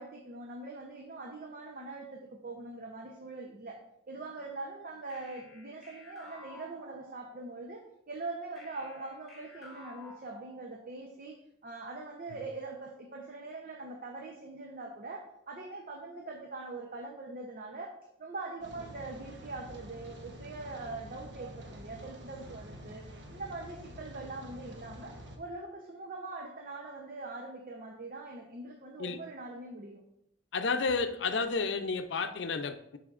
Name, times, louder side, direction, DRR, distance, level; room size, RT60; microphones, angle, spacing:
voice 1, 0.0-3.8 4.1-23.0 23.3-30.0, right 3 dB, 50° right, 1 dB, 0.8 m, -42 dB
sound 1, 5.1-7.6 8.6-11.1, left 1 dB, ahead, 2.7 m, -53 dB
Rain, 18.6-25.4, equal, 90° right, 1.2 m, -48 dB
voice 2, 30.5-33.0, left 4 dB, 75° left, 9 dB, 0.6 m, -31 dB
12.0 x 5.0 x 2.5 m, 0.80 s
head